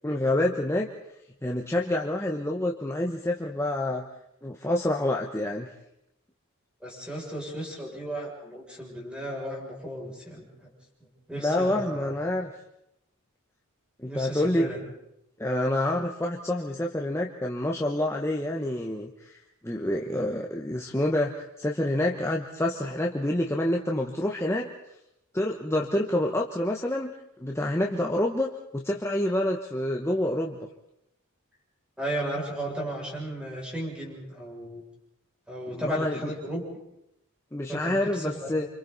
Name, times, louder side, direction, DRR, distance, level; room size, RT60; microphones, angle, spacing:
voice 1, 0.0-0.9 1.4-4.0 4.4-5.7 11.4-12.5 14.0-14.7 15.4-19.4 19.6-24.7 25.3-27.1 27.4-30.6 35.7-36.3 37.5-38.7, left 1 dB, 10° left, -1 dB, 1.1 m, -27 dB
voice 2, 6.8-10.4 11.3-12.1 14.1-14.8 32.0-34.8 35.5-36.6 37.7-38.5, right 1 dB, 5° right, -3 dB, 6.8 m, -34 dB
29.0 x 26.5 x 4.1 m, 0.83 s
head